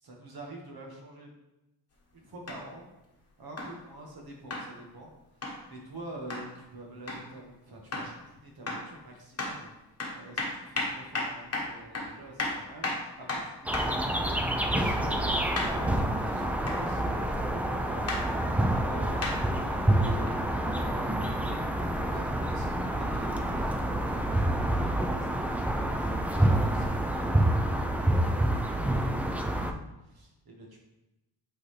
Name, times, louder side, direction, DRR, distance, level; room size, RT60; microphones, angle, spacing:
voice 1, 0.0-1.3 2.1-2.9 3.4-5.1 5.4-9.7 10.1-18.1 18.6-30.9, right 2 dB, 60° right, -1 dB, 1.5 m, -47 dB
sound 1, 2.5-2.6 3.6-3.8 4.5-4.7 5.4-5.6 6.3-6.5 7.1-7.3 7.9-8.2 8.7-8.9 9.4-9.6 10.0-14.0 15.6-15.8 16.7-16.8 18.1-18.3 19.2-19.4 20.3-20.4, left 2 dB, 35° left, 1.1 m, -33 dB
sound 2, 13.7-29.7, right 1 dB, 5° right, 0.3 m, -28 dB
8.4 x 4.1 x 3.2 m, 0.95 s
wide cardioid pair, 165°, 41 cm